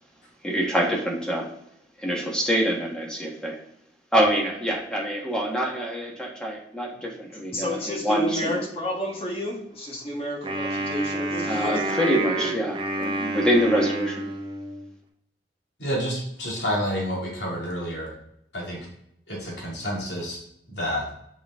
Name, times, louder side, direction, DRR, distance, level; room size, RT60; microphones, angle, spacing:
voice 1, 0.4-1.5 2.0-3.6 4.1-8.6 11.4-14.3, equal, 5° left, -2 dB, 1.5 m, -25 dB
voice 2, 7.3-11.9 12.3-12.5, equal, 35° left, -1 dB, 1.6 m, -31 dB
Wind instrument woodwind instrument, 10.4-14.9, right 2 dB, 30° right, 1.0 m, -29 dB
voice 3, 15.8-18.1 18.5-18.8 19.3-20.4 20.7-21.1, equal, 75° left, -4 dB, 2.6 m, -29 dB
6.8 x 5.1 x 3.6 m, 0.75 s
head